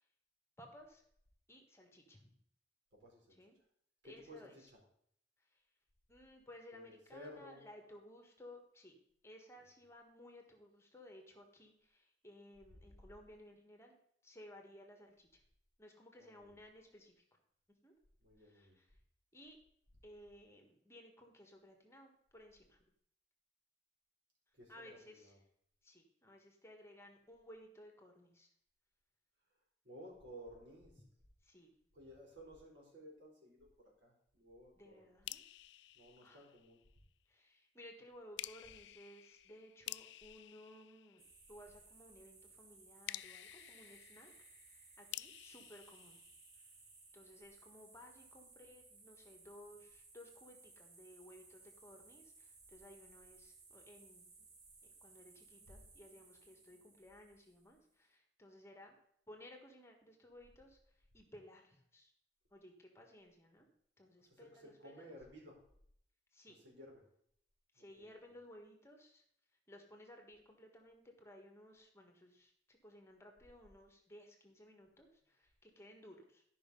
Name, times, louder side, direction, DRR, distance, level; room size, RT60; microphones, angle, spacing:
voice 1, 0.6-1.0 1.5-2.3 3.4-3.6 4.0-4.7 6.1-9.0 9.2-14.0 14.2-15.4 15.8-17.1 17.8-17.9 18.4-18.9 19.3-19.6 20.0-22.8 24.7-25.3 25.8-28.5 31.4-31.7 34.8-35.4 36.2-36.5 37.3-41.2 41.5-44.3 45.0-46.2 47.1-54.2 55.0-59.0 59.3-60.8 61.1-62.1 62.5-63.7 64.0-65.2 66.3-66.6 67.7-69.2 69.7-76.4, left 1 dB, 15° left, 3 dB, 1.5 m, -58 dB
voice 2, 2.9-3.4 4.0-4.8 6.7-8.0 9.6-9.7 16.2-16.6 18.2-18.8 24.5-25.4 29.8-31.0 31.9-35.0 35.9-36.8 55.7-55.8 64.2-65.6 66.5-67.0 67.8-68.4, equal, 90° right, -2 dB, 4.1 m, -56 dB
sound 1, 35.3-37.0 38.4-41.7 43.1-47.0, left 14 dB, 80° left, 0.3 m, -51 dB
sound 2, 41.2-57.9, right 3 dB, 60° right, 2.4 m, -62 dB
12.5 x 5.5 x 5.3 m, 0.68 s
head